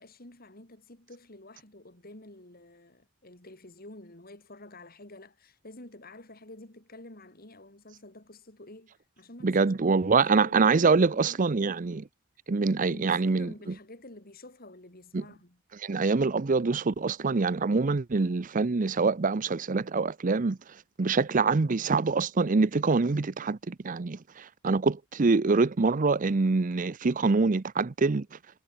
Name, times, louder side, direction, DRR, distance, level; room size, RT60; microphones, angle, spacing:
voice 1, 0.0-11.5 12.9-15.6, left 2 dB, 45° left, 3.9 m, -49 dB
voice 2, 9.4-12.0 12.5-13.5 15.1-15.2 15.8-20.6 21.0-28.2, right 4 dB, 40° right, 0.6 m, -25 dB
head